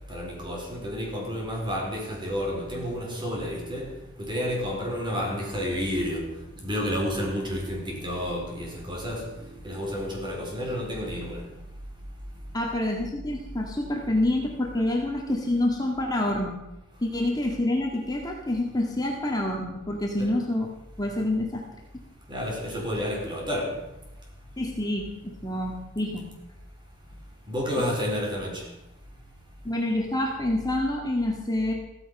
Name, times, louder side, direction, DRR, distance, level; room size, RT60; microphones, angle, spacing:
voice 1, 0.1-3.9 4.2-6.3 6.6-9.2 9.6-11.4 20.2-20.3 22.3-23.8 27.5-28.6, equal, 25° right, 4.3 m, -30 dB
voice 2, 12.5-16.6 17.0-20.7 21.0-21.7 24.6-26.3 29.6-31.7, left 1 dB, 20° left, 1.9 m, -27 dB
15.5 x 14.5 x 5.5 m
head